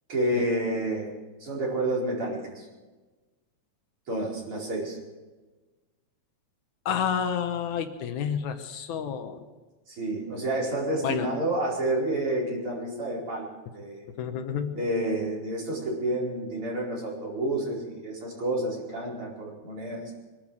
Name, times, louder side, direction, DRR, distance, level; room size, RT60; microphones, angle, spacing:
voice 1, 0.1-1.1 1.4-2.7 4.1-5.0 9.9-14.0 14.7-20.0, right 1 dB, 45° right, -4 dB, 5.4 m, -29 dB
voice 2, 6.9-9.5 11.0-11.3 14.2-14.8, left 8 dB, 80° left, 7 dB, 2.5 m, -30 dB
22.5 x 13.0 x 4.8 m, 1.3 s
omnidirectional pair, 3.4 m